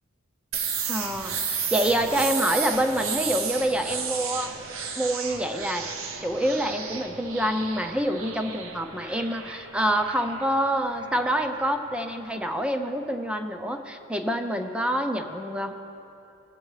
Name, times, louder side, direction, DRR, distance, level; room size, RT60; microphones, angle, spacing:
sound 1, 0.5-12.2, right 6 dB, 80° right, 0.8 m, -33 dB
voice 1, 0.9-4.5 5.0-5.9 6.2-15.7, equal, 5° right, 6 dB, 0.4 m, -27 dB
18.5 x 7.6 x 3.2 m, 2.9 s
head